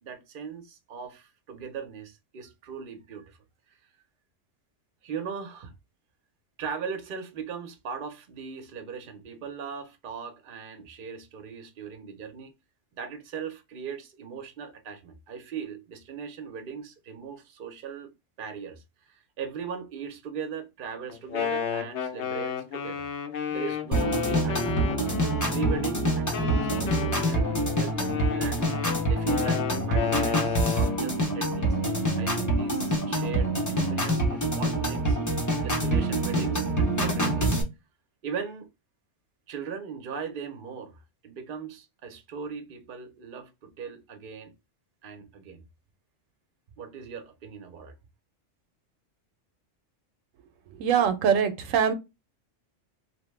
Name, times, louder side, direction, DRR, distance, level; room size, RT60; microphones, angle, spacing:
voice 1, 0.0-3.4 3.7-3.8 5.0-5.7 6.6-12.5 12.9-18.1 18.4-23.1 23.5-25.2 25.5-28.7 29.1-31.8 32.2-35.2 35.6-37.5 38.2-38.7 39.5-44.5 45.0-45.6 46.8-47.9, right 6 dB, 50° right, 0.7 m, -39 dB
Wind instrument woodwind instrument, 21.1-25.8 26.3-31.0, left 7 dB, 70° left, 0.8 m, -32 dB
sound 1, 23.9-37.6, right 1 dB, 20° left, 0.5 m, -26 dB
voice 2, 50.8-51.9, right 8 dB, 85° right, 0.9 m, -23 dB
2.9 x 2.1 x 3.1 m
omnidirectional pair, 1.3 m